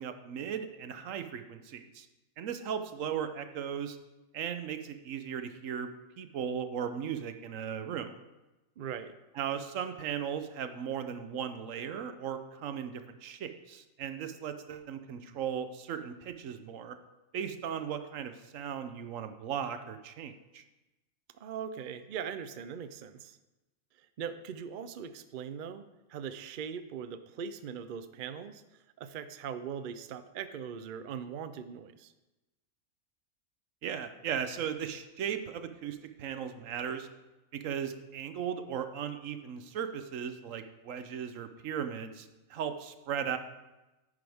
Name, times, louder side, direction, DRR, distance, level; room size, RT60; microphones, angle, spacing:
voice 1, 0.0-2.1 2.4-4.0 4.3-5.9 6.2-8.2 9.4-17.0 17.3-20.6 33.8-37.1 37.5-43.4, right 8 dB, 75° right, 9 dB, 1.1 m, -37 dB
voice 2, 8.8-9.2 21.4-23.4 24.2-25.8 26.1-28.6 29.0-32.1, right 7 dB, 60° right, 11 dB, 0.5 m, -40 dB
10.0 x 9.7 x 3.5 m, 1.0 s
omnidirectional pair, 1.4 m